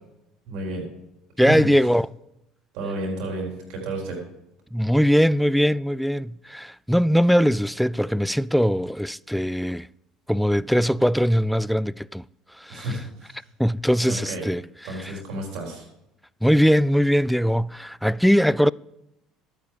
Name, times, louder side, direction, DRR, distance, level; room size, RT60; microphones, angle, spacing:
voice 1, 0.5-0.8 1.4-1.7 2.7-4.2 12.7-13.4 14.1-14.5 14.8-15.9, right 1 dB, 65° right, 4.1 m, -31 dB
voice 2, 1.4-2.1 4.7-9.9 10.3-12.2 12.6-12.8 13.6-14.6 15.0-15.1 16.4-18.7, equal, ahead, 0.3 m, -21 dB
12.0 x 9.3 x 5.0 m
hypercardioid pair, 65°, 0 cm